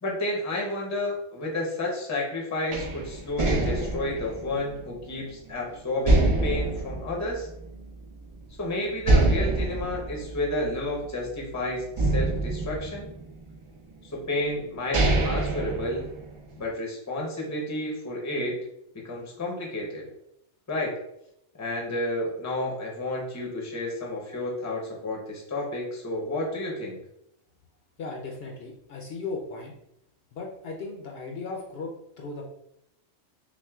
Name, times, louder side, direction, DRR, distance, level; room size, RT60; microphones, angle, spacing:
voice 1, 0.0-7.5 8.6-13.1 14.1-16.1 16.6-18.6 18.9-20.1 20.7-20.9 21.6-27.0, left 1 dB, 20° left, -1 dB, 0.6 m, -31 dB
sound 1, 2.7-5.5 6.0-8.0 8.3-8.4 9.0-11.4 12.0-13.5 14.3-14.4 14.7-16.5, right 2 dB, 50° right, 0.4 m, -25 dB
voice 2, 28.0-29.7 30.3-32.5, left 3 dB, 65° left, -1 dB, 0.7 m, -37 dB
5.9 x 2.1 x 2.3 m, 0.79 s
omnidirectional pair, 1.2 m